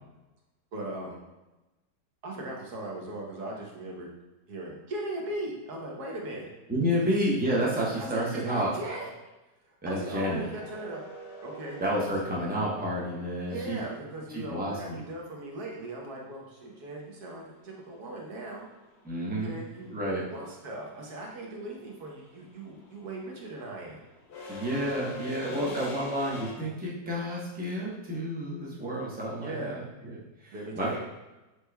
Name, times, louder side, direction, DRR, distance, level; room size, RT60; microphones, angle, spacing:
voice 1, 0.7-1.2 2.2-4.1 4.5-6.5 7.0-7.1 8.0-9.1 9.6-11.0 11.4-12.1 13.5-18.7 19.4-24.0 25.5-25.8 29.4-29.8 30.5-31.0, right 1 dB, 65° right, -1 dB, 1.4 m, -39 dB
voice 2, 6.7-8.7 9.8-10.4 11.8-13.8 14.3-15.0 19.0-19.6 19.9-20.3 24.5-31.0, equal, 15° right, -6 dB, 0.3 m, -30 dB
sound 1, 10.3-14.4 16.8-16.9 18.2-18.5 18.7-26.5, equal, 60° left, 0.7 m, -43 dB
6.6 x 3.1 x 2.2 m, 1.0 s
omnidirectional pair, 1.9 m